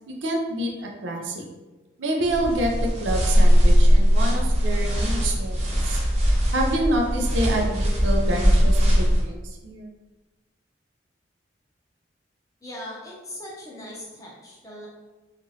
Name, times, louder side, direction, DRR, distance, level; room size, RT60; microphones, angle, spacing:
voice 1, 0.1-1.5 2.0-5.6 5.9-6.0 6.5-9.9, right 1 dB, 80° right, 1 dB, 0.5 m, -27 dB
sound 1, 2.3-9.3, equal, 35° right, 0.6 m, -20 dB
voice 2, 12.6-14.9, left 1 dB, 20° left, -4 dB, 0.6 m, -39 dB
3.0 x 2.5 x 2.7 m, 1.2 s
head